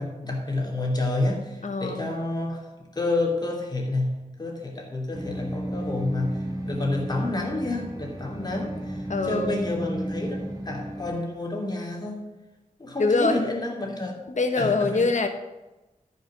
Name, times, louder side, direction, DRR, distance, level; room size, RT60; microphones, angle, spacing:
voice 1, 0.0-12.2 12.8-14.1 14.6-15.0, left 2 dB, 30° left, -1 dB, 2.5 m, -29 dB
voice 2, 1.6-2.1 9.1-9.6 13.0-13.5 14.3-15.3, left 3 dB, 60° left, 5 dB, 1.2 m, -24 dB
sound 1, 5.1-11.2, right 1 dB, 25° right, 2.0 m, -33 dB
13.0 x 5.6 x 6.3 m, 1.1 s
wide cardioid pair, 100°, 14 cm